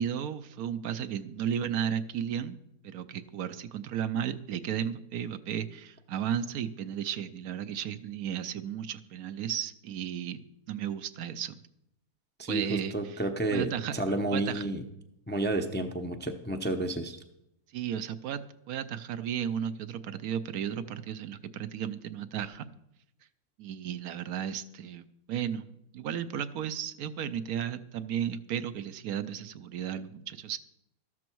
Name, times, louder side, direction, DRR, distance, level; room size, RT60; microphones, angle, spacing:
voice 1, 0.0-2.6 2.8-10.4 10.7-11.6 12.5-13.2 13.5-13.9 14.3-14.7 17.7-18.4 18.7-22.7 23.6-30.6, right 9 dB, 75° right, 11 dB, 1.1 m, -34 dB
voice 2, 12.4-14.8 15.3-17.2, right 1 dB, 10° left, 5 dB, 0.5 m, -31 dB
13.5 x 12.5 x 4.6 m, 0.82 s
omnidirectional pair, 1.6 m